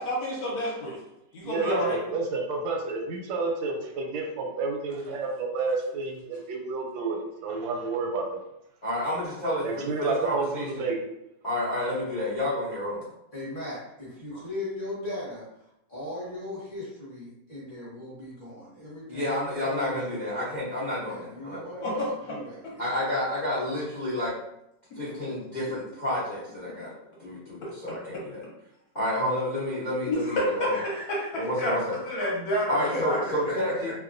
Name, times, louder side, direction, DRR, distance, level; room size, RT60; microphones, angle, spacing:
voice 1, 0.0-1.0 1.3-2.0 21.8-22.1 30.1-31.7 32.0-33.2, left 1 dB, 65° left, -4 dB, 1.1 m, -29 dB
voice 2, 1.5-8.4 9.6-11.0, right 3 dB, 85° right, 2 dB, 1.3 m, -30 dB
voice 3, 8.8-10.9 11.4-13.1 19.1-21.7 22.8-24.3 25.0-26.9 27.2-28.4 28.9-30.8 31.3-32.0 32.7-33.9, left 1 dB, 80° left, -12 dB, 0.4 m, -30 dB
voice 4, 13.3-15.4 15.9-20.4 21.0-22.0 22.3-23.1 32.9-33.2 33.4-33.9, left 1 dB, 35° left, -8 dB, 0.9 m, -38 dB
2.9 x 2.2 x 2.4 m, 0.83 s
omnidirectional pair, 2.0 m